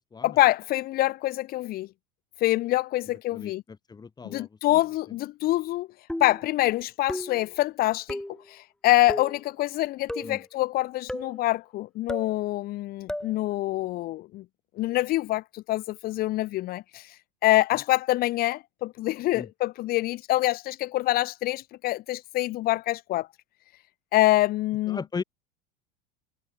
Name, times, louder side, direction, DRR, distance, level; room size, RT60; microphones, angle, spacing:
voice 1, 0.2-1.9 2.4-3.6 4.2-5.9 6.2-8.2 8.5-14.4 14.8-17.1 17.4-23.3 24.1-25.0, left 16 dB, 50° left, 2.7 m, -25 dB
voice 2, 3.3-4.8 10.2-10.4 19.3-19.5 24.9-25.2, left 5 dB, 20° left, 7.5 m, -37 dB
sound 1, 6.1-6.5 7.1-7.5 8.1-8.4 9.1-9.4 10.1-10.4 11.1-11.4 12.1-12.3 13.1-13.4, left 1 dB, 5° left, 4.3 m, -34 dB
supercardioid pair, 100°, 19 cm